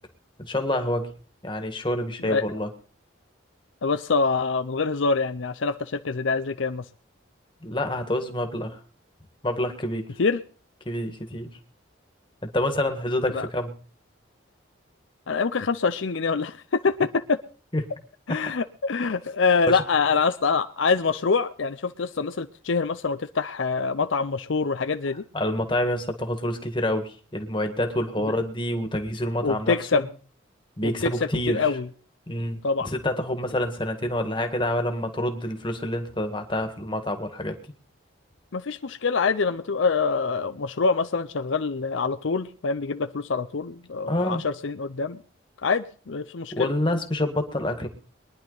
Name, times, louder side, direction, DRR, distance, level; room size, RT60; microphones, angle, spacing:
voice 1, 0.4-1.1 1.4-2.7 7.6-8.8 9.4-10.0 10.8-11.5 12.5-13.7 17.7-17.8 18.3-18.4 19.7-19.8 25.3-30.0 30.8-31.7 32.3-37.6 44.1-44.4 46.5-47.9, left 1 dB, 25° left, 6 dB, 1.7 m, -27 dB
voice 2, 2.2-2.6 3.8-6.8 10.2-10.4 13.3-13.5 15.3-17.4 18.3-25.2 29.4-30.1 30.8-31.1 31.5-31.9 32.6-32.9 38.5-45.2 45.6-46.7, left 4 dB, 75° left, 10 dB, 0.6 m, -25 dB
22.5 x 10.5 x 4.0 m, 0.41 s
head